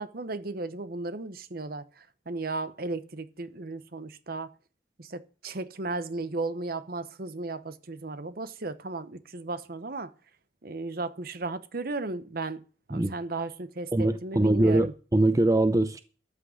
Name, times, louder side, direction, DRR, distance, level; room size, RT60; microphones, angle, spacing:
voice 1, 0.0-4.5 5.0-10.1 10.6-12.6 12.9-14.9, right 3 dB, 50° right, 0.9 m, -35 dB
voice 2, 13.9-16.0, right 2 dB, 20° right, 0.5 m, -23 dB
13.0 x 6.2 x 8.4 m
head